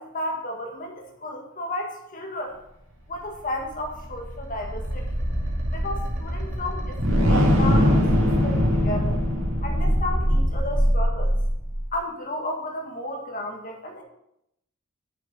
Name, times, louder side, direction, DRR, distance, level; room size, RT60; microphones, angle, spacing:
voice 1, 0.0-2.6 3.1-5.0 5.7-8.0 8.4-9.2 9.6-11.3 11.9-14.0, left 1 dB, 40° left, 2 dB, 1.8 m, -33 dB
sound 1, 3.5-11.9, equal, 65° right, 2.2 m, -22 dB
7.2 x 6.5 x 5.5 m, 0.79 s
head